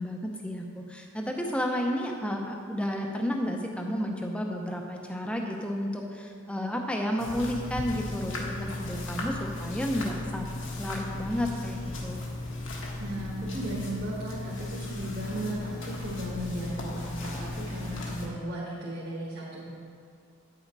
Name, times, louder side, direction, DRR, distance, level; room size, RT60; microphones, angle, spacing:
voice 1, 0.0-12.2, equal, 5° left, 1 dB, 0.7 m, -32 dB
sound 1, 7.2-18.3, left 2 dB, 60° left, 1.3 m, -36 dB
voice 2, 13.0-19.7, right 1 dB, 45° right, -7 dB, 1.4 m, -36 dB
9.3 x 6.6 x 4.7 m, 2.2 s
head